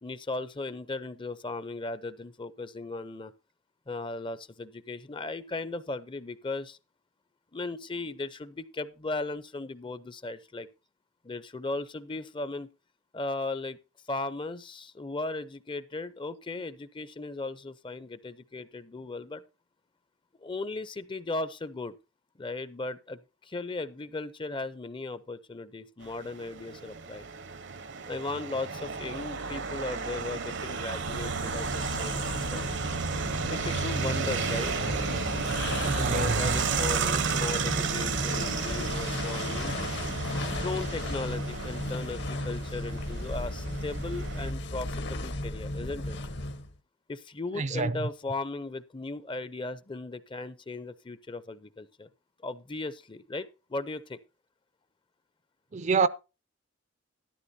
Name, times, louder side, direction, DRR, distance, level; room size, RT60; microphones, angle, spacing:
voice 1, 0.0-3.3 3.9-6.8 7.5-10.7 11.2-12.7 13.1-13.8 14.1-19.4 20.4-21.9 22.4-27.3 28.1-32.6 33.4-34.7 35.9-39.8 40.5-46.2 47.1-52.1 52.4-54.2, left 3 dB, 25° left, 0.6 m, -37 dB
sound 1, 26.1-44.5, right 5 dB, 60° right, 0.8 m, -32 dB
sound 2, 30.9-46.8, left 1 dB, 60° left, 1.1 m, -35 dB
voice 2, 35.9-36.6 47.5-48.0 55.7-56.1, right 4 dB, 35° right, 0.5 m, -27 dB
13.0 x 11.5 x 2.7 m
head